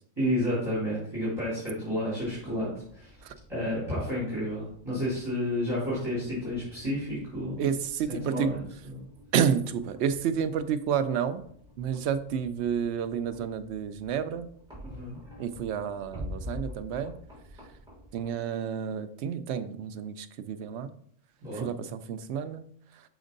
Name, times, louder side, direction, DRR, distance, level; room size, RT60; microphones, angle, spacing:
voice 1, 0.2-3.2 3.5-7.6 8.1-9.0 14.8-15.2 21.4-21.7, equal, 20° right, -10 dB, 3.2 m, -31 dB
sound 1, 2.2-18.3, left 1 dB, 5° right, 3.0 m, -48 dB
voice 2, 7.6-8.5 9.3-11.4 11.8-14.5 15.4-17.1 18.1-20.9 21.5-23.0, right 8 dB, 70° right, 10 dB, 0.8 m, -30 dB
6.2 x 5.1 x 3.9 m, 0.64 s
omnidirectional pair, 1.2 m